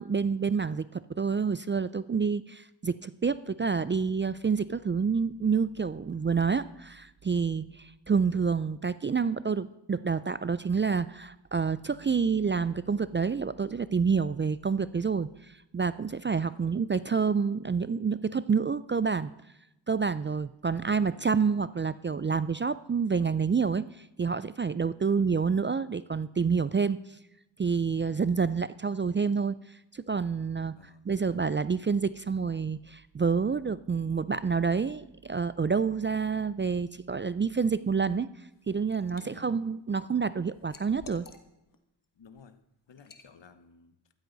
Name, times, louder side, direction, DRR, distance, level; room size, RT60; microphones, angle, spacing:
voice 1, 0.0-19.3 19.9-27.0 27.6-30.8 31.1-38.3 38.7-41.3, right 5 dB, 25° right, 16 dB, 0.4 m, -28 dB
voice 2, 6.1-6.4 16.5-16.7 20.7-21.2 25.1-25.4 30.8-31.4 39.0-39.5 42.2-42.6 42.9-43.9, left 6 dB, 65° left, 10 dB, 1.1 m, -56 dB
Liquid, 38.4-39.3 39.7-41.8 42.2-42.4 43.0-43.3, left 3 dB, 45° left, 1.4 m, -52 dB
14.0 x 13.0 x 4.0 m, 0.88 s
cardioid pair, 45°, 46 cm